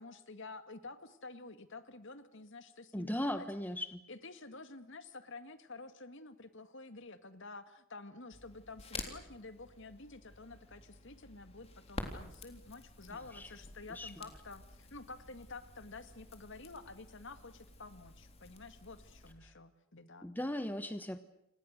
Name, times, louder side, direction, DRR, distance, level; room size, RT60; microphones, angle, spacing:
voice 1, 0.0-3.5 4.1-20.3, left 3 dB, 55° left, 10 dB, 2.0 m, -50 dB
voice 2, 2.9-4.0 13.3-13.5 13.9-14.1 20.2-21.2, left 1 dB, 10° left, 9 dB, 1.2 m, -37 dB
Crackle, 8.3-19.3, left 2 dB, 25° left, 3.6 m, -50 dB
29.5 x 26.5 x 6.6 m, 0.82 s
head